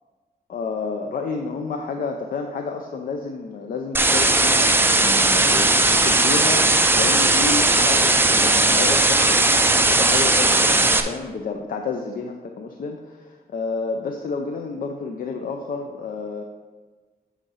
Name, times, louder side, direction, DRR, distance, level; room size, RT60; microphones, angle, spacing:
voice 1, 0.5-16.4, left 4 dB, 60° left, 3 dB, 0.5 m, -30 dB
sound 1, 3.9-11.0, right 2 dB, 15° right, 0.4 m, -17 dB
8.2 x 3.7 x 5.6 m, 1.3 s
wide cardioid pair, 170°, 16 cm